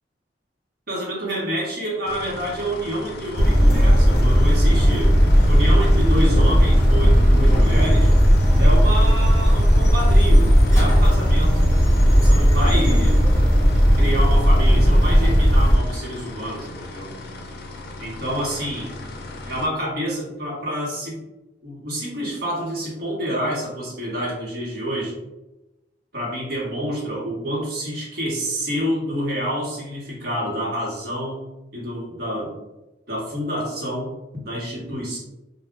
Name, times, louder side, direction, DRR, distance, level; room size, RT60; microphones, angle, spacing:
voice 1, 0.9-5.2 5.5-8.1 8.6-13.3 14.0-17.1 18.0-19.0 19.5-21.2 21.6-25.1 26.1-31.5 31.7-32.5 33.1-35.2, equal, 55° right, -5 dB, 1.0 m, -28 dB
sound 1, 2.0-19.7, left 2 dB, 55° left, 0.4 m, -37 dB
sound 2, 3.4-15.8, equal, 15° left, 0.7 m, -15 dB
2.3 x 2.1 x 3.6 m, 0.99 s
head